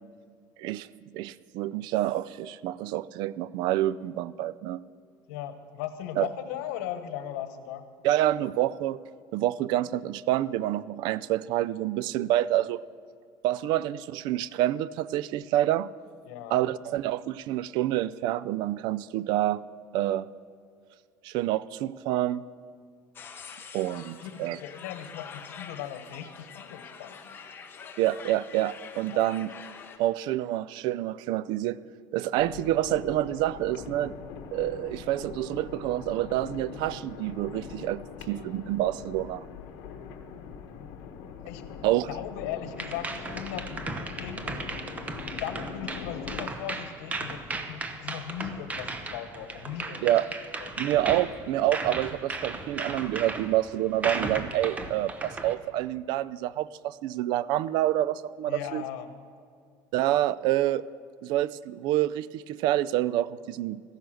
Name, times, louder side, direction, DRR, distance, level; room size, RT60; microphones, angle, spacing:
voice 1, 1.1-4.8 6.2-6.3 8.0-9.0 9.3-12.8 13.4-15.9 16.5-19.6 19.9-20.3 21.2-22.4 23.7-24.6 28.0-29.5 30.0-31.8 32.1-34.1 34.5-38.0 38.3-39.4 41.8-42.1 50.0-50.3 50.8-58.8 59.9-60.8 61.2-63.8, right 14 dB, 60° right, 19 dB, 0.4 m, -27 dB
voice 2, 5.3-7.8 16.3-16.6 23.9-27.4 29.1-29.2 41.4-41.7 42.1-43.9 44.2-44.5 45.2-50.2 50.6-50.7 51.1-51.2 58.5-59.1, left 10 dB, 90° left, 9 dB, 1.1 m, -38 dB
sound 1, 23.1-30.0, left 6 dB, 25° left, 1.0 m, -45 dB
sound 2, 32.4-46.4, left 6 dB, 70° left, 1.1 m, -42 dB
sound 3, 42.8-55.5, right 3 dB, 15° right, 0.8 m, -36 dB
14.5 x 10.5 x 6.3 m, 2.1 s
cardioid pair, 150°, 9 cm